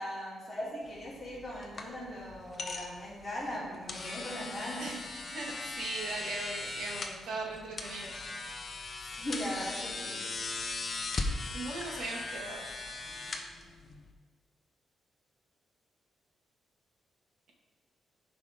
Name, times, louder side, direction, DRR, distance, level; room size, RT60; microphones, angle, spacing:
voice 1, 0.0-4.9 9.0-10.2, equal, 5° left, -11 dB, 3.2 m, -39 dB
sound 1, 0.8-14.1, left 3 dB, 30° left, 0.8 m, -39 dB
voice 2, 5.3-8.1 11.5-12.6, right 2 dB, 75° right, -2 dB, 2.2 m, -39 dB
15.0 x 5.1 x 3.8 m, 1.3 s
cardioid pair, 165°, 0 cm